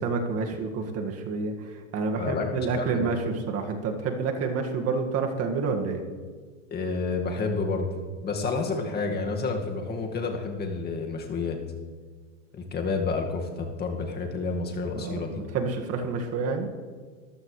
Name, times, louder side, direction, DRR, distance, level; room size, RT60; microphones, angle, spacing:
voice 1, 0.0-6.0 14.9-16.7, right 4 dB, 40° right, 3 dB, 2.0 m, -29 dB
voice 2, 2.2-3.1 6.7-7.9 8.2-11.6 12.5-15.4, left 4 dB, 25° left, 2 dB, 2.0 m, -29 dB
23.5 x 14.5 x 3.3 m, 1.5 s
hypercardioid pair, 115°, 38 cm